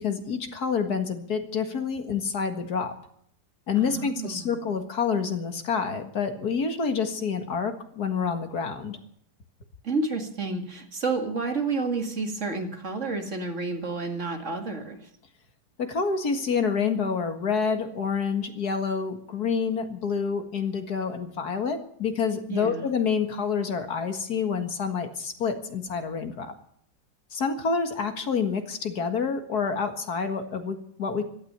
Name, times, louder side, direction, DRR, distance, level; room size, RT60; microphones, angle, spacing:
voice 1, 0.0-2.9 3.7-9.0 15.8-26.5 27.3-31.2, left 5 dB, 70° left, 7 dB, 2.3 m, -28 dB
voice 2, 3.8-4.7 9.8-15.0 22.5-22.9, right 3 dB, 45° right, 5 dB, 2.4 m, -30 dB
17.0 x 12.5 x 6.9 m, 0.67 s
omnidirectional pair, 1.7 m